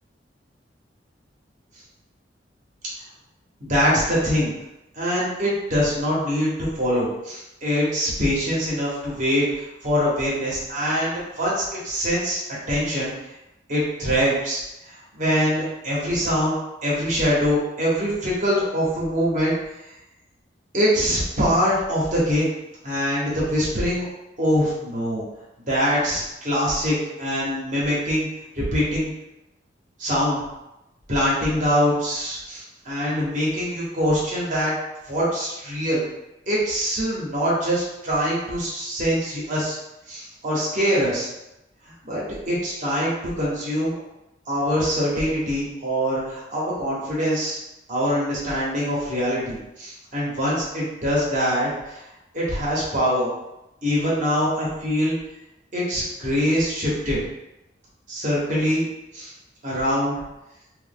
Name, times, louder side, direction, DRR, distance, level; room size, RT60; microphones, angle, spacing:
voice 1, 3.6-4.5 4.9-12.4 12.7-13.1 13.7-14.6 14.9-16.5 16.8-19.5 20.7-22.5 22.8-24.0 24.4-25.2 25.7-28.3 28.6-29.1 30.0-30.4 31.1-34.7 35.1-36.0 36.5-39.8 40.1-41.3 42.0-44.0 44.5-47.6 47.9-52.0 52.3-53.3 53.8-55.2 55.7-57.2 58.1-58.9 59.1-59.3 59.6-60.2, equal, 45° right, -6 dB, 0.9 m, -23 dB
3.0 x 2.1 x 3.4 m, 0.93 s
head